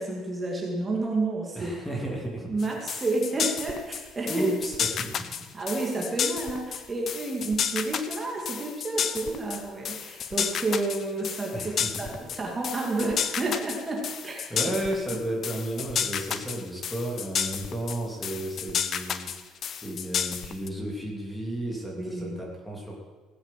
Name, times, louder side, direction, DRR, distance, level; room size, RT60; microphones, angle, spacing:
voice 1, 0.0-1.7 2.5-4.5 5.5-11.7 12.0-14.4 22.0-22.4, right 2 dB, 20° right, -2 dB, 2.5 m, -30 dB
voice 2, 1.5-2.5 4.3-5.5 11.5-12.2 14.5-23.0, right 1 dB, 5° left, -1 dB, 3.0 m, -33 dB
sound 1, 2.6-20.7, left 8 dB, 45° left, 0.8 m, -31 dB
17.0 x 8.0 x 7.6 m, 1.3 s
cardioid pair, 135°, 0 cm